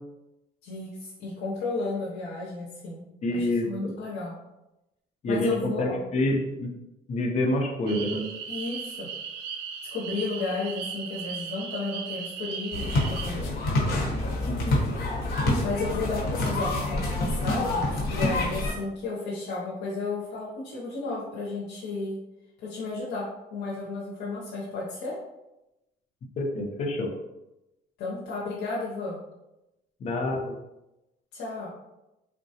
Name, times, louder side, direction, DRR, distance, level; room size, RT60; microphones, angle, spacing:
voice 1, 0.6-3.0 3.3-4.4 5.3-6.0 8.5-9.1 9.8-13.4 15.6-22.2 22.6-25.1 28.0-29.2 31.3-31.7, left 3 dB, 90° left, -5 dB, 0.7 m, -33 dB
voice 2, 3.2-3.9 5.2-6.7 7.1-8.3 14.5-14.8 26.4-27.1 30.0-30.5, left 1 dB, 40° left, 1 dB, 0.6 m, -27 dB
sound 1, 7.9-13.3, right 7 dB, 85° right, 0.4 m, -37 dB
sound 2, 12.7-18.7, left 2 dB, 65° left, 1.1 m, -27 dB
3.7 x 2.2 x 2.7 m, 0.95 s
cardioid pair, 110°, 17 cm